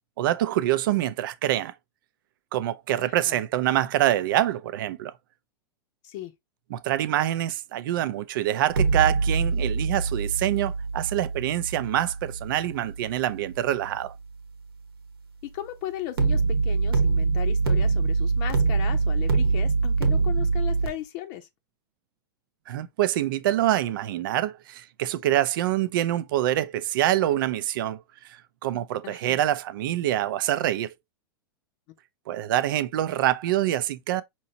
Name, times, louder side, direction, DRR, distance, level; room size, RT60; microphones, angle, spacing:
voice 1, 0.2-1.7 2.5-5.1 6.7-14.1 22.7-28.0 28.3-30.9 32.3-34.2, right 13 dB, 60° right, 0.5 m, -25 dB
voice 2, 3.0-3.4 6.0-6.3 15.4-21.5 29.0-29.4, left 13 dB, 50° left, 0.7 m, -37 dB
sound 1, 8.7-13.8 16.2-20.9, right 4 dB, 80° right, 1.1 m, -24 dB
5.4 x 2.9 x 2.8 m
hypercardioid pair, 100°, 12 cm